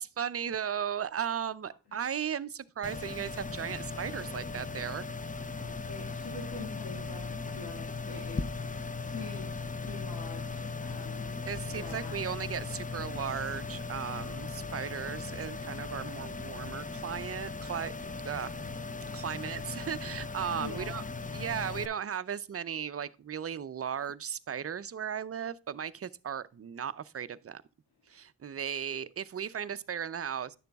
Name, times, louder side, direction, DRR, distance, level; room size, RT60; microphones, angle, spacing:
voice 1, 0.0-5.1 11.5-17.9 18.2-18.6 19.1-21.0 21.3-27.6 28.1-30.6, right 8 dB, 35° right, 0.5 m, -36 dB
sound 1, 2.8-21.9, left 4 dB, 20° left, 0.5 m, -38 dB
voice 2, 5.9-8.5 9.0-11.4 11.6-12.2 20.5-21.1 28.0-28.1, left 3 dB, 90° left, 2.1 m, -45 dB
10.0 x 6.6 x 2.3 m
cardioid pair, 65°, 39 cm